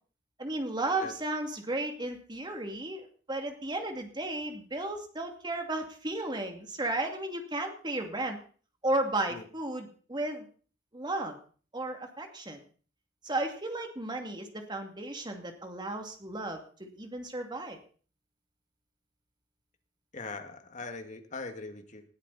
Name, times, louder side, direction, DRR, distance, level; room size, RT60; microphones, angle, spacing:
voice 1, 0.4-8.4 8.8-10.4 10.9-11.4 11.7-12.6 13.2-17.8, right 2 dB, 25° right, 5 dB, 2.5 m, -34 dB
voice 2, 20.1-22.0, left 3 dB, 40° left, 6 dB, 2.0 m, -41 dB
20.0 x 13.0 x 4.1 m, 0.41 s
head